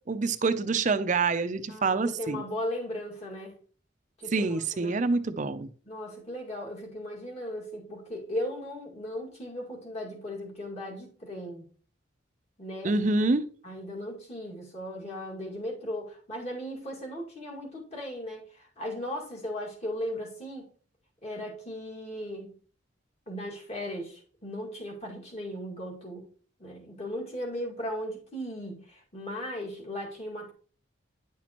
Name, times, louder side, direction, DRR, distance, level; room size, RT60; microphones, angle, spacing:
voice 1, 0.1-2.4 4.3-5.7 12.8-13.5, right 3 dB, 40° right, 0.5 m, -26 dB
voice 2, 1.7-3.6 4.2-5.0 5.9-11.6 12.6-13.0 13.6-20.7 21.2-22.5 23.3-26.2 26.6-30.5, equal, 35° left, 2.1 m, -37 dB
10.0 x 5.9 x 3.0 m
head